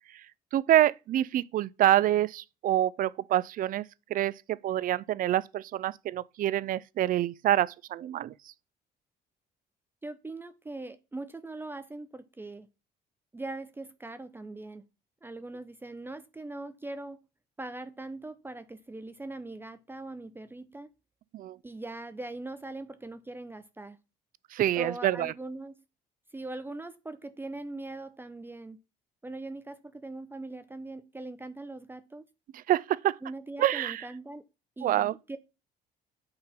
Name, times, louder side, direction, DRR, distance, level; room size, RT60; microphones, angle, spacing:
voice 1, 0.5-8.5 21.3-21.6 24.5-25.3 32.5-33.2 33.6-34.1 34.8-35.1, right 12 dB, 55° right, 0.5 m, -27 dB
voice 2, 10.0-12.7 13.3-14.9 15.2-17.2 17.6-20.9 21.6-24.0 24.8-25.8 26.3-28.8 29.2-32.2 33.2-34.4 34.8-35.4, right 2 dB, 10° right, 0.6 m, -41 dB
8.8 x 3.8 x 5.8 m
cardioid pair, 110°, 17 cm